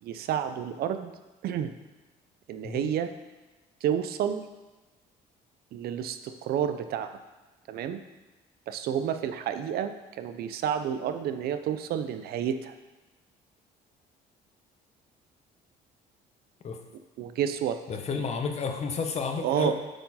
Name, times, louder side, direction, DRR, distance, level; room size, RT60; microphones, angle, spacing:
voice 1, 0.0-1.1 1.4-1.7 2.5-3.1 3.8-4.4 5.7-7.2 7.7-8.0 8.7-12.7 17.2-17.8 18.2-18.3 19.4-19.7, right 9 dB, 65° right, 10 dB, 0.5 m, -30 dB
voice 2, 17.9-19.7, left 5 dB, 40° left, 5 dB, 0.9 m, -31 dB
7.7 x 4.5 x 4.2 m, 1.2 s
cardioid pair, 110°, 17 cm